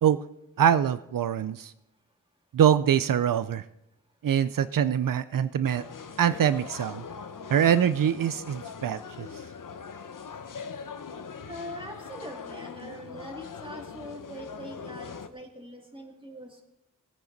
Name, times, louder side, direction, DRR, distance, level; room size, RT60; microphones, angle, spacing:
voice 1, 0.6-1.7 2.5-3.6 4.2-5.8 6.2-7.0 7.5-9.3, right 9 dB, 85° right, 14 dB, 0.5 m, -24 dB
sound 1, 5.6-15.3, left 6 dB, 75° left, 0.8 m, -41 dB
voice 2, 11.5-16.6, equal, 15° right, 1 dB, 2.5 m, -42 dB
19.0 x 10.0 x 4.0 m, 0.84 s
wide cardioid pair, 80°, 32 cm